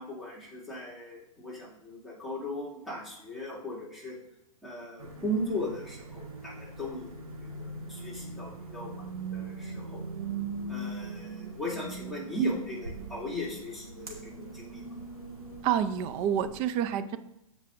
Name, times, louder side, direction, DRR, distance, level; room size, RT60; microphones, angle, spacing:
voice 1, 0.0-4.1 4.6-9.0 9.3-10.0 10.7-14.9, equal, ahead, -7 dB, 2.5 m, -37 dB
sound 1, 5.0-16.5, right 3 dB, 90° right, 2.0 m, -41 dB
voice 2, 15.6-17.2, right 9 dB, 30° right, 11 dB, 0.5 m, -28 dB
14.0 x 4.7 x 2.6 m, 0.81 s
hypercardioid pair, 115°, 18 cm